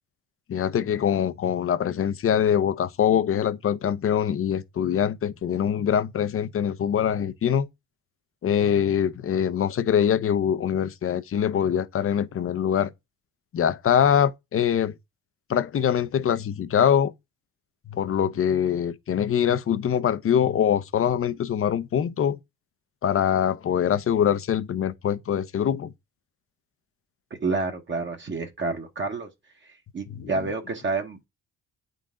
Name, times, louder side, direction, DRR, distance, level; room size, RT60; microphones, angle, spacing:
voice 1, 0.5-7.7 8.4-12.9 13.5-14.9 15.5-17.1 17.9-22.4 23.0-25.9 30.2-30.3, left 9 dB, 45° left, 0.7 m, -23 dB
voice 2, 27.4-29.3 29.9-31.3, right 3 dB, 40° right, 1.2 m, -29 dB
8.7 x 4.0 x 3.7 m
cardioid pair, 90°, 30 cm